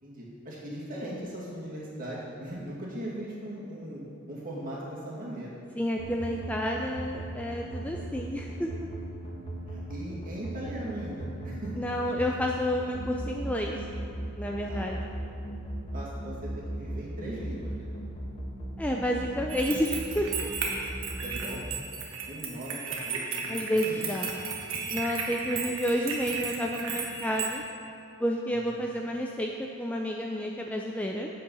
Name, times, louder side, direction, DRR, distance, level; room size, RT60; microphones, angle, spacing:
voice 1, 0.0-4.0 4.3-5.6 9.7-11.7 14.7-14.9 15.9-17.9 21.2-21.8 22.3-24.2 28.5-28.9, right 1 dB, 40° right, -6 dB, 2.2 m, -39 dB
voice 2, 5.7-8.7 11.8-13.8 14.4-15.0 18.8-20.5 23.5-24.3 24.9-27.6 28.2-31.3, equal, 5° left, 0 dB, 0.4 m, -30 dB
sound 1, 6.0-21.5, right 1 dB, 30° left, 1.7 m, -37 dB
sound 2, 19.5-27.6, right 5 dB, 70° right, 1.4 m, -35 dB
9.0 x 7.5 x 5.4 m, 2.6 s
head